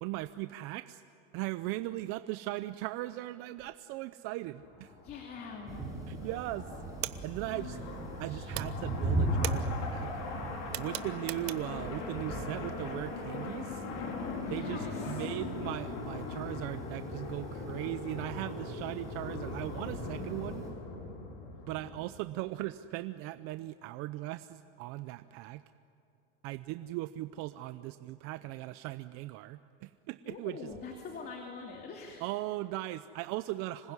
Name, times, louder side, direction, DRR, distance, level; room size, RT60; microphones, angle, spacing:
voice 1, 0.0-1.0 1.3-4.9 6.1-6.7 7.2-7.8 8.2-10.1 10.8-13.8 14.5-20.6 21.7-25.6 26.4-30.6 32.2-33.9, right 16 dB, 45° right, 12 dB, 0.7 m, -38 dB
sound 1, 4.6-22.1, left 3 dB, 50° left, 5.1 m, -41 dB
voice 2, 5.0-5.8 7.4-7.8 8.3-8.4 14.4-15.2 30.3-32.2, left 5 dB, 30° left, 1 dB, 2.9 m, -44 dB
sound 2, 5.7-20.7, right 1 dB, 10° right, 7.5 m, -39 dB
sound 3, 7.0-8.2 8.5-11.9, right 17 dB, 75° right, 1.2 m, -40 dB
26.0 x 20.5 x 9.8 m, 2.8 s
supercardioid pair, 150°, 31 cm